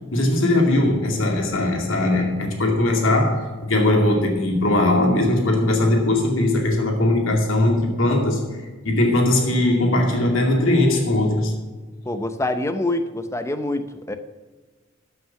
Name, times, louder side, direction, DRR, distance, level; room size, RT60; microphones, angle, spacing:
voice 1, 0.1-8.4 8.8-11.6, left 1 dB, 70° left, 1 dB, 2.4 m, -19 dB
voice 2, 12.1-14.2, left 1 dB, 15° left, 9 dB, 0.6 m, -25 dB
13.5 x 5.7 x 5.8 m, 1.4 s
head